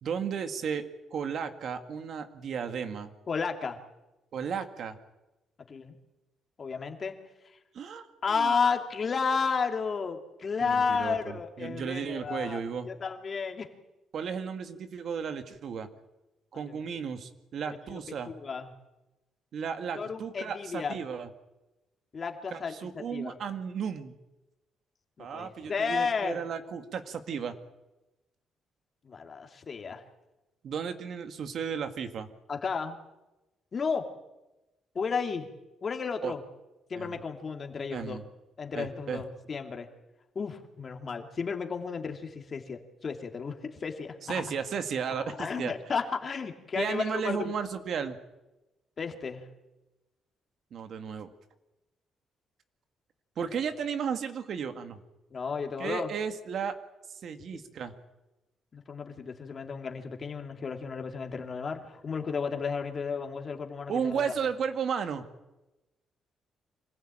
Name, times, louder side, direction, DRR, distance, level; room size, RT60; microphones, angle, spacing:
voice 1, 0.0-3.1 4.3-5.0 7.7-8.5 10.6-12.9 14.1-15.9 16.5-18.3 19.5-21.3 22.5-24.1 25.2-27.5 30.6-32.3 36.2-36.3 37.0-37.2 37.9-38.2 38.7-39.2 44.2-45.7 46.8-48.2 50.7-51.3 53.4-55.0 55.8-56.8 57.1-57.9 63.9-65.3, right 7 dB, 60° right, 9 dB, 2.0 m, -34 dB
voice 2, 3.3-3.8 5.7-5.9 6.6-7.1 8.2-12.6 12.8-13.7 16.5-16.8 17.6-18.0 18.3-18.7 19.9-21.0 22.1-22.7 23.1-23.3 25.2-26.4 29.0-30.0 32.5-33.0 33.7-34.1 34.9-35.5 35.8-36.4 36.9-38.2 38.6-39.9 40.3-44.4 45.4-47.5 49.0-49.5 55.3-56.1 58.7-64.2, left 5 dB, 40° left, 4 dB, 2.7 m, -32 dB
25.0 x 15.5 x 9.0 m, 1.0 s
cardioid pair, 90°, 0 cm